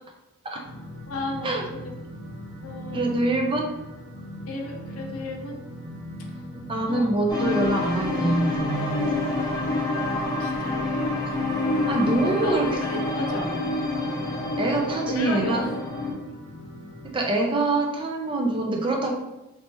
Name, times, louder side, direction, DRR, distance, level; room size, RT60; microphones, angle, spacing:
sound 1, 0.6-17.1, equal, 40° right, 1.2 m, -40 dB
voice 1, 1.1-1.9 2.6-3.1 4.5-5.6 6.9-7.1 10.4-10.9 12.4-13.7 15.1-15.5, left 2 dB, 70° left, 1 dB, 0.6 m, -33 dB
voice 2, 2.9-3.7 6.5-9.3 11.9-12.8 14.6-15.7 17.0-19.1, right 2 dB, 25° right, 2 dB, 0.4 m, -25 dB
sound 2, 7.3-16.1, left 2 dB, 15° left, 0.9 m, -27 dB
3.2 x 2.9 x 2.9 m, 0.98 s
head